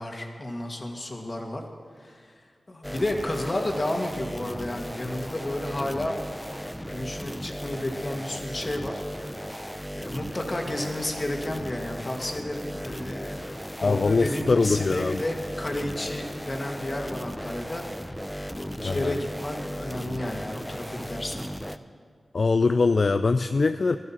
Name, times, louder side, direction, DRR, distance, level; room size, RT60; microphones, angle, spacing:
voice 1, 0.0-1.6 2.0-2.3 2.7-6.2 6.8-9.0 9.9-13.4 13.8-18.1 18.6-21.5, left 1 dB, 45° left, 2 dB, 2.0 m, -32 dB
sound 1, 2.8-21.8, equal, 5° left, 0.6 m, -36 dB
voice 2, 13.8-15.2 18.8-19.2 22.3-24.0, left 4 dB, 65° left, 10 dB, 0.3 m, -22 dB
12.5 x 12.0 x 5.8 m, 2.1 s
cardioid pair, 40°, 0 cm